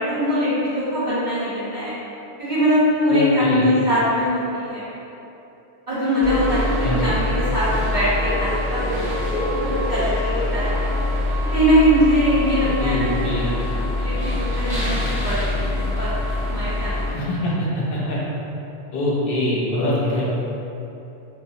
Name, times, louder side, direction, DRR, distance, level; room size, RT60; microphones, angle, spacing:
voice 1, 0.0-1.9 2.4-4.9 5.9-9.6 9.9-10.8 11.5-13.5 14.0-16.1 16.5-17.3, equal, 40° right, -16 dB, 1.1 m, -22 dB
voice 2, 3.1-3.7 6.8-7.1 12.8-13.5 17.1-18.2 18.9-20.4, left 1 dB, 60° left, -6 dB, 0.9 m, -24 dB
sound 1, 6.2-17.1, left 1 dB, 5° right, 0.8 m, -24 dB
4.7 x 2.0 x 2.7 m, 3.0 s
omnidirectional pair, 1.2 m